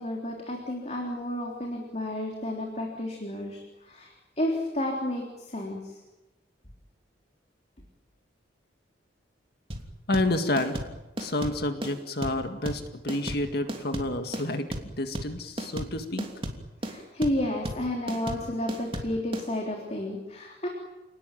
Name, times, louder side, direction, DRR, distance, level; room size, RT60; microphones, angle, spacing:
voice 1, 0.0-6.0 16.8-20.7, left 1 dB, 35° left, 0 dB, 3.7 m, -31 dB
sound 1, 9.7-19.5, right 1 dB, 30° right, 3.1 m, -34 dB
voice 2, 10.1-10.9 11.2-16.3, left 1 dB, 55° left, 6 dB, 2.0 m, -29 dB
29.5 x 19.5 x 9.2 m, 1.1 s
head